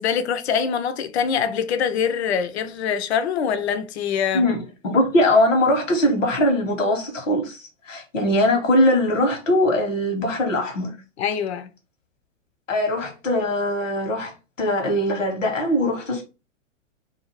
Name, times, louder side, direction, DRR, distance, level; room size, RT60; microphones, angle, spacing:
voice 1, 0.0-4.5 11.2-11.7, left 7 dB, 55° left, 0.5 m, -24 dB
voice 2, 4.8-11.0 12.7-14.3 14.6-16.2, left 1 dB, 75° left, 1.1 m, -21 dB
2.5 x 2.4 x 2.9 m
figure-of-eight pair, 110°, 38 cm